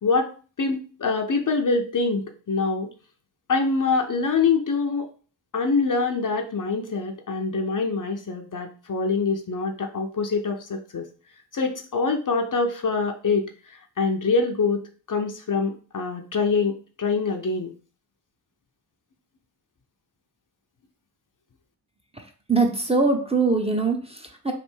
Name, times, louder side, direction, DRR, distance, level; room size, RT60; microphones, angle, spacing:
voice 1, 0.0-0.3 0.6-2.9 3.5-5.1 5.5-11.1 11.5-14.8 15.1-17.7, left 4 dB, 45° left, 4 dB, 0.8 m, -25 dB
voice 2, 22.5-24.5, right 3 dB, 15° right, 2 dB, 0.8 m, -22 dB
3.4 x 2.5 x 4.5 m, 0.40 s
supercardioid pair, 50°, 46 cm